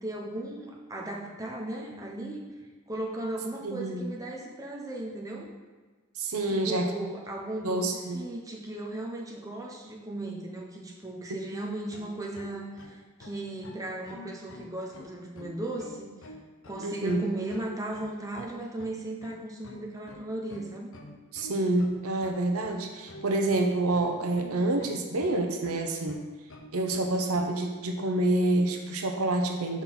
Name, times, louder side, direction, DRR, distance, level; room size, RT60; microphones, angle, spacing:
voice 1, 0.0-2.4 2.9-5.5 6.5-7.9 8.1-16.3 16.7-20.9, right 1 dB, 15° right, -1 dB, 0.8 m, -36 dB
voice 2, 3.6-4.1 6.2-7.1 7.6-8.2 16.8-17.3 21.3-26.2 26.7-29.8, right 2 dB, 75° right, 4 dB, 0.8 m, -28 dB
sound 1, 11.9-27.5, left 2 dB, 60° left, 0.8 m, -48 dB
5.5 x 4.3 x 5.9 m, 1.4 s
head